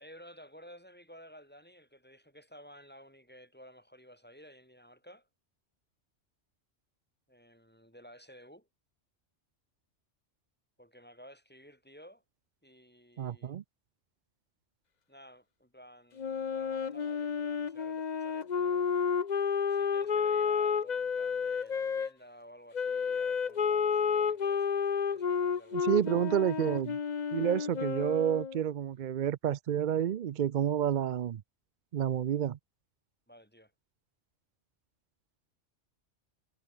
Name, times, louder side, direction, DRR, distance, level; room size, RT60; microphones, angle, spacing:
voice 1, 0.0-5.3 7.3-8.7 10.8-12.2 12.6-13.6 15.1-18.9 19.7-26.3 33.3-33.7, equal, 10° left, 7.4 m, -54 dB
voice 2, 13.2-13.6 25.7-27.0 27.3-31.4 31.9-32.6, right 10 dB, 55° right, 0.5 m, -29 dB
Wind instrument woodwind instrument, 16.2-22.1 22.7-28.6, left 6 dB, 40° left, 0.9 m, -31 dB
omnidirectional pair, 1.2 m